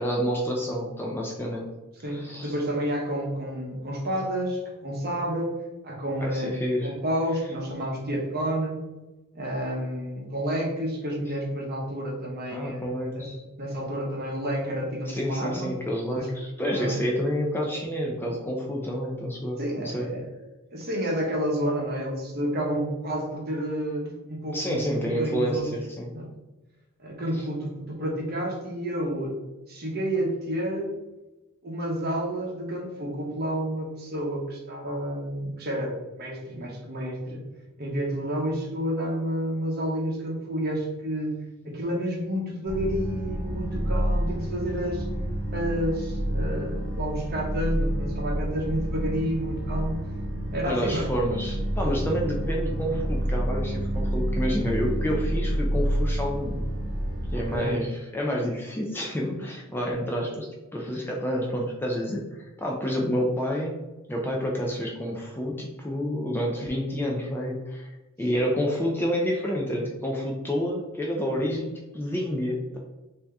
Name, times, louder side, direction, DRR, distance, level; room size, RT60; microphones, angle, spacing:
voice 1, 0.0-1.7 2.1-2.5 6.2-6.9 12.5-13.4 15.1-20.1 24.5-26.1 50.6-56.6 57.3-63.7 64.1-72.8, equal, 10° left, -1 dB, 0.4 m, -29 dB
voice 2, 2.0-5.6 5.8-8.8 9.3-12.9 13.1-13.3 13.6-15.7 16.1-16.3 16.7-17.0 19.6-20.2 20.7-25.7 26.1-26.3 27.0-29.4 29.7-30.9 31.6-37.5 37.8-45.1 45.5-50.0 50.5-51.1 57.3-57.8, equal, 45° right, -1 dB, 0.9 m, -30 dB
sound 1, 42.7-57.6, right 1 dB, 20° right, 1.2 m, -29 dB
3.4 x 2.7 x 3.4 m, 1.1 s
head